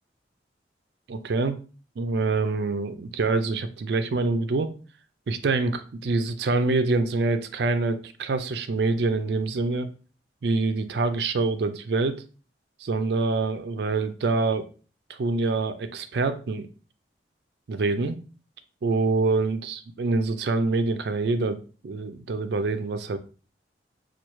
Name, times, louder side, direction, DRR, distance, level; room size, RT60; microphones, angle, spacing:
voice 1, 1.1-1.6 2.0-4.7 5.3-9.9 10.4-12.2 12.8-14.7 15.2-16.7 17.7-18.2 18.8-23.2, right 3 dB, 65° right, 9 dB, 0.4 m, -25 dB
4.4 x 2.3 x 3.0 m, 0.37 s
head